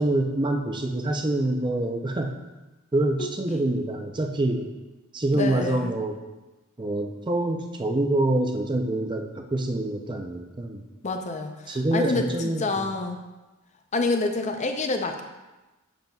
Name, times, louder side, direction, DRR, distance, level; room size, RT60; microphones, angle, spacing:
voice 1, 0.0-2.4 2.9-4.7 5.1-6.2 6.8-10.8 11.7-12.9, right 1 dB, 20° right, 4 dB, 0.5 m, -26 dB
voice 2, 3.2-3.6 5.3-5.9 11.0-13.2 13.9-15.2, left 3 dB, 30° left, 5 dB, 0.5 m, -28 dB
7.9 x 7.0 x 2.3 m, 1.1 s
head